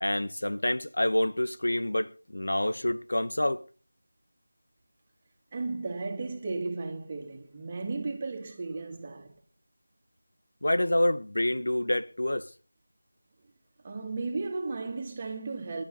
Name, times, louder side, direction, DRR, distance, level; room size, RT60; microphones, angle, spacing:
voice 1, 0.0-3.6 10.6-12.5, left 1 dB, 65° left, 1.3 m, -27 dB
voice 2, 5.5-9.4 13.8-15.8, right 3 dB, 20° right, 2.7 m, -35 dB
23.5 x 12.0 x 4.1 m
figure-of-eight pair, 170°, 0 cm